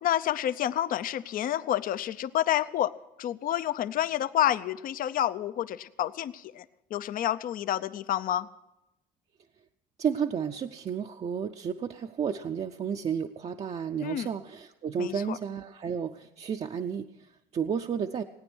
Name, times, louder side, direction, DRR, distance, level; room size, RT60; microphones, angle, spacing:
voice 1, 0.0-2.9 3.2-6.6 6.9-8.5 14.0-14.3 15.0-15.4, left 12 dB, 55° left, 15 dB, 0.6 m, -29 dB
voice 2, 10.0-18.2, right 7 dB, 40° right, 4 dB, 0.6 m, -32 dB
18.5 x 9.3 x 6.2 m, 0.93 s
cardioid pair, 110°, 17 cm